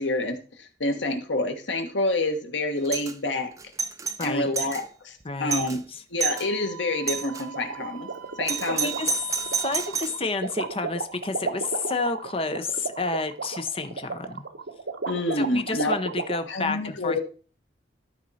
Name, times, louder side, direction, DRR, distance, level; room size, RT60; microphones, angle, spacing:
voice 1, 0.0-3.5 4.2-5.8 6.1-8.1 8.4-8.9 15.1-16.0 16.5-17.2, left 2 dB, 85° left, 6 dB, 1.3 m, -27 dB
Doorbell, 2.9-3.2 3.6-4.8 5.2-5.3 5.5-5.8 6.2-6.5 7.1-7.4 8.5-10.2, right 6 dB, 15° right, 0.5 m, -29 dB
voice 2, 5.2-6.0 8.7-9.1 9.5-14.4 15.4-17.2, left 3 dB, 30° left, 9 dB, 0.7 m, -30 dB
Wind instrument woodwind instrument, 6.3-10.0, right 8 dB, 60° right, 2.0 m, -43 dB
sound 1, 7.3-16.4, right 4 dB, 75° right, 0.9 m, -32 dB
12.5 x 4.4 x 4.1 m, 0.39 s
head